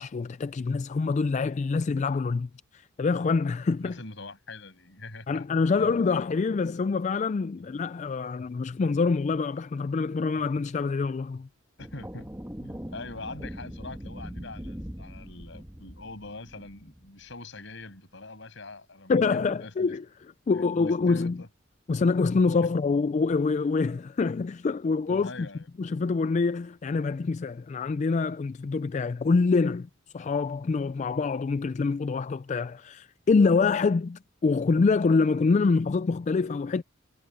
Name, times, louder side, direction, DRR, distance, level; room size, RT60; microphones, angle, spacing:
voice 1, 0.0-4.0 5.3-11.5 19.1-20.0 20.5-21.4 21.9-25.3 25.8-29.9 30.1-36.8, left 4 dB, 35° left, 0.3 m, -25 dB
voice 2, 3.8-5.4 5.8-5.9 7.6-7.7 11.8-12.3 12.6-20.0 20.7-21.5 22.6-22.7 25.1-25.7, left 2 dB, 65° left, 7.0 m, -43 dB
sound 1, 11.8-17.4, equal, 10° right, 1.9 m, -41 dB
head